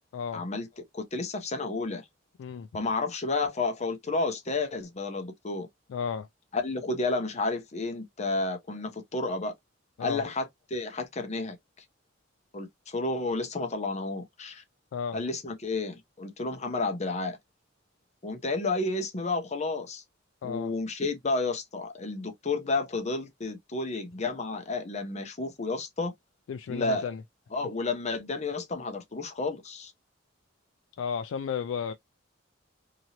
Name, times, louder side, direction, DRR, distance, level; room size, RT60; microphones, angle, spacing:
voice 1, 0.3-0.7 0.9-2.1 2.7-5.7 6.5-9.5 10.0-11.6 12.5-14.6 15.1-17.4 18.2-20.0 20.4-26.1 26.7-27.0 27.5-29.9, left 3 dB, 35° left, 0.8 m, -31 dB
voice 2, 5.9-6.3 10.0-10.2 14.9-15.2 20.4-20.7 26.5-27.2 31.0-31.9, left 7 dB, 80° left, 0.3 m, -33 dB
2.9 x 2.6 x 2.8 m
head